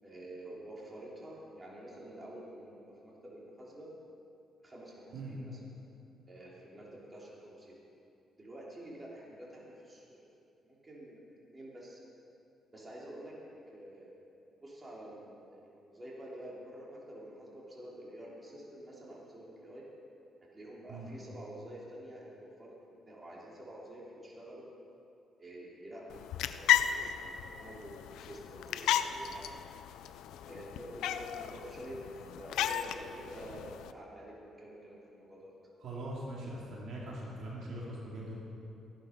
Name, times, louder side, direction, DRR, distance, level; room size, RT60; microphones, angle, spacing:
voice 1, 0.0-3.9 4.6-5.6 6.3-7.7 8.4-10.2 10.6-12.0 12.7-13.3 13.7-14.2 14.6-19.8 20.5-24.6 25.4-29.4 30.5-35.5, right 1 dB, 25° right, -5 dB, 3.9 m, -48 dB
sound 1, 26.1-33.9, left 10 dB, 85° left, 0.5 m, -34 dB
voice 2, 35.8-38.3, right 1 dB, 65° right, -4 dB, 2.8 m, -41 dB
15.5 x 11.5 x 5.4 m, 2.6 s
cardioid pair, 90°, 0 cm